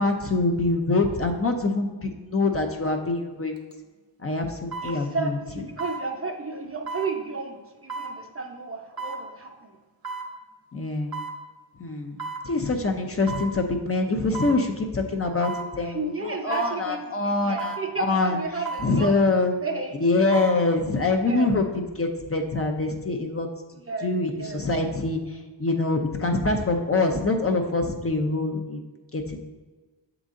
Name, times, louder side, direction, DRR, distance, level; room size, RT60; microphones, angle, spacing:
voice 1, 0.0-3.5 4.2-5.6 10.7-11.2 11.7-19.5 19.9-23.5 24.0-29.4, left 3 dB, 30° left, 3 dB, 0.6 m, -25 dB
sound 1, 3.6-3.7 4.7-5.0 5.8-6.0 6.9-7.1 7.9-8.1 9.0-9.2 10.0-10.3 11.1-11.4 12.2-12.5 13.3-13.5 14.3-14.6 15.4-15.7 16.5-16.8 17.6-17.9 18.7-18.9 20.1-20.6 21.0-21.1, right 4 dB, 55° right, 1.0 m, -33 dB
voice 2, 4.8-9.8 15.9-19.1 19.6-19.9 21.2-21.5 23.9-24.1 24.4-24.6, right 4 dB, 30° right, 2 dB, 0.7 m, -32 dB
7.2 x 3.9 x 3.7 m, 1.3 s
wide cardioid pair, 90°, 44 cm